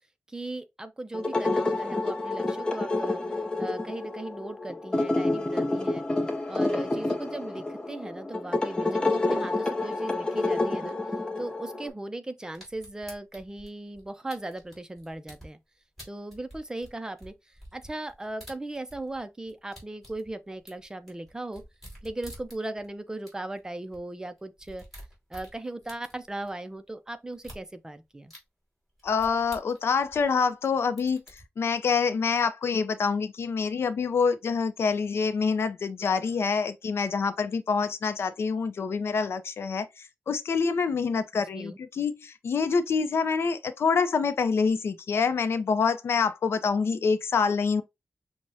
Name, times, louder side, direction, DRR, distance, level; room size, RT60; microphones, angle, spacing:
voice 1, 0.3-3.2 3.6-6.0 6.5-11.0 11.4-15.6 16.1-21.6 22.0-24.8 25.3-28.3 41.3-41.8, right 2 dB, 15° right, 0.4 m, -38 dB
sound 1, 1.1-11.9, left 2 dB, 20° left, 0.7 m, -28 dB
sound 2, 12.5-15.5 16.0-19.2 19.5-22.9 23.3-23.4 23.6-23.7 23.9-24.0 24.4-26.5 27.3-27.6 28.3-28.4 29.0-30.7 31.0-31.4, equal, ahead, 2.3 m, -48 dB
voice 2, 29.0-31.2 31.6-39.9 40.3-47.8, left 5 dB, 80° left, 0.5 m, -26 dB
6.0 x 2.1 x 2.7 m
wide cardioid pair, 130°, 4 cm